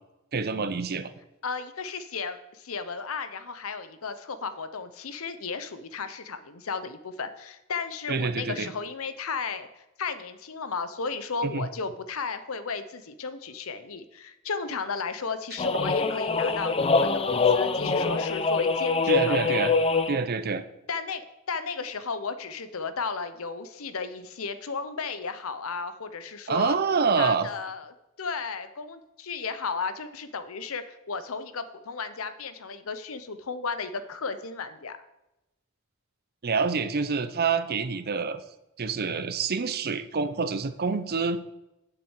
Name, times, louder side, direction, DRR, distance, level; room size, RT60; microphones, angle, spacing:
voice 1, 0.3-1.1 8.1-8.7 11.4-11.7 19.1-19.8 20.1-20.6 26.5-27.5 36.4-38.4 38.8-41.4, right 5 dB, 45° right, 11 dB, 0.7 m, -27 dB
voice 2, 1.4-9.7 10.0-19.4 20.9-26.8 27.2-35.0, left 5 dB, 75° left, 11 dB, 0.8 m, -34 dB
sound 1, 15.6-20.3, left 4 dB, 25° left, 0.5 m, -24 dB
7.1 x 6.8 x 8.0 m, 0.95 s
head